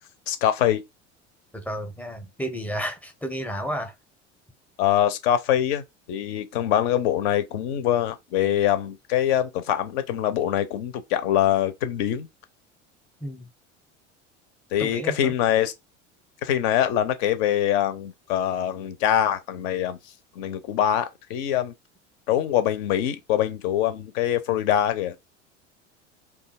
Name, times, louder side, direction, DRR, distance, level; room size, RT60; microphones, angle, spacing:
voice 1, 0.3-0.8 4.8-12.3 14.7-15.7 16.4-20.0 20.4-21.7 22.3-25.2, left 11 dB, 55° left, 0.6 m, -24 dB
voice 2, 1.5-3.9 13.2-13.5 14.8-15.3, equal, 5° left, 0.6 m, -32 dB
2.7 x 2.4 x 4.0 m
figure-of-eight pair, 75°, 36 cm